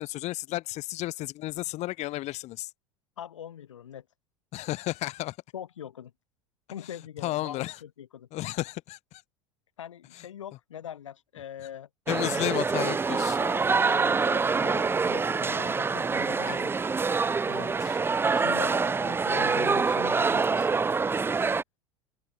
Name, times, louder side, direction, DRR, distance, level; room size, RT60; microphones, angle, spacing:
voice 1, 0.0-2.7 4.5-5.4 7.2-7.8 8.3-9.2 12.1-13.4 16.3-16.7 17.5-18.0, left 17 dB, 45° left, 2.0 m, -33 dB
voice 2, 3.2-4.1 5.5-6.1 6.7-8.3 9.8-11.9 12.2-12.6 13.4-16.7 18.3-20.7, left 10 dB, 70° left, 4.0 m, -42 dB
sound 1, 12.1-21.6, right 4 dB, 15° right, 0.7 m, -26 dB
open air
figure-of-eight pair, 75°, 16 cm